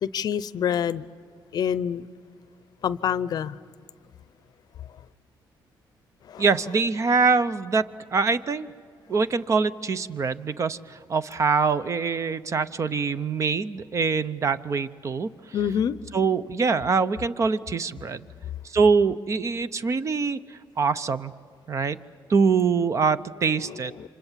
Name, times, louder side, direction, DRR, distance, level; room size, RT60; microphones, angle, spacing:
voice 1, 0.0-1.1 1.5-2.1 2.8-3.6 6.2-6.5 15.5-16.0 23.7-24.1, left 8 dB, 55° left, 17 dB, 0.6 m, -27 dB
voice 2, 6.4-7.8 8.1-8.7 9.1-15.3 16.1-18.3 18.6-20.4 20.8-21.3 21.7-22.0 22.3-24.1, right 5 dB, 40° right, 14 dB, 0.7 m, -24 dB
29.0 x 25.5 x 7.4 m, 2.2 s
cardioid pair, 115°, 8 cm